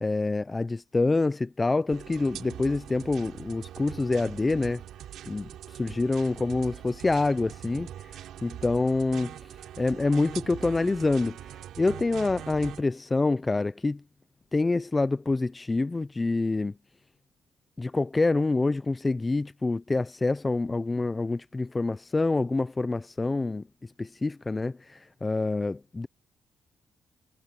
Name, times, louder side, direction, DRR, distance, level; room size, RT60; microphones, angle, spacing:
voice 1, 0.0-4.8 5.3-5.5 5.8-7.9 8.4-9.3 9.8-11.4 11.8-14.0 14.5-16.7 17.8-23.6 24.0-26.1, left 3 dB, 20° left, 0.5 m, -26 dB
sound 1, 1.9-12.8, right 11 dB, 80° right, 4.1 m, -43 dB
cardioid pair, 90°, 0 cm